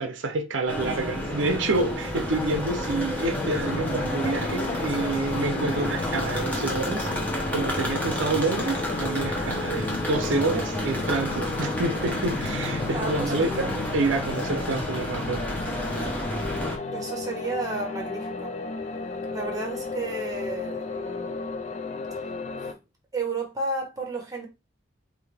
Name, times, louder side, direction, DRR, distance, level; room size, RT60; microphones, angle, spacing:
voice 1, 0.0-7.1 7.5-15.4, right 3 dB, 70° right, 0.5 m, -28 dB
sound 1, 0.7-16.8, left 1 dB, 10° left, 1.0 m, -30 dB
sound 2, 3.7-22.7, left 3 dB, 35° left, 0.4 m, -34 dB
voice 2, 12.9-13.8 16.9-18.5 19.3-21.6 22.1-22.3 22.6-22.8 23.1-24.5, right 2 dB, 20° right, 1.1 m, -33 dB
4.8 x 2.6 x 3.3 m
head